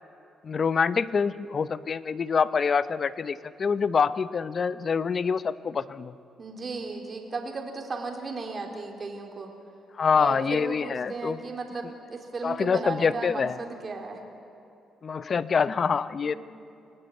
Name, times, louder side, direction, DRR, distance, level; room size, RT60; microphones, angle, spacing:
voice 1, 0.4-6.1 10.0-11.4 12.4-13.6 15.0-16.3, left 6 dB, 45° left, 14 dB, 0.8 m, -26 dB
voice 2, 6.4-9.5 10.1-14.2 16.2-16.4, right 3 dB, 40° right, 2 dB, 3.7 m, -35 dB
26.5 x 18.0 x 9.5 m, 2.7 s
cardioid pair, 90°, 0 cm